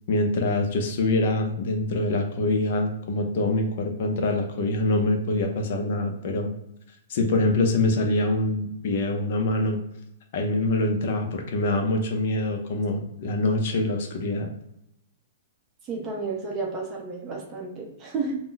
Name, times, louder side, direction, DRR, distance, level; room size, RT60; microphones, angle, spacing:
voice 1, 0.1-6.5 7.1-9.8 10.3-14.5, left 2 dB, 50° left, 3 dB, 0.5 m, -25 dB
voice 2, 15.9-18.4, right 4 dB, 20° right, -1 dB, 0.6 m, -31 dB
2.3 x 2.0 x 3.8 m, 0.79 s
hypercardioid pair, 160°, 0 cm